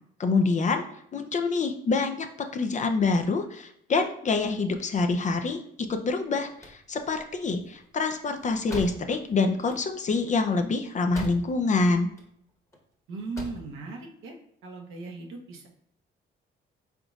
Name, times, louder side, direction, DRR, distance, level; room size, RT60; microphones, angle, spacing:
voice 1, 0.2-0.9 1.1-12.1, left 3 dB, 40° left, 6 dB, 0.4 m, -26 dB
sound 1, 6.4-11.8 12.0-12.8 13.1-13.7, left 2 dB, 15° left, 1.1 m, -42 dB
voice 2, 13.1-14.4 14.6-15.7, right 3 dB, 85° right, 1 dB, 0.8 m, -38 dB
3.9 x 3.5 x 2.4 m, 0.71 s
cardioid pair, 90°, 20 cm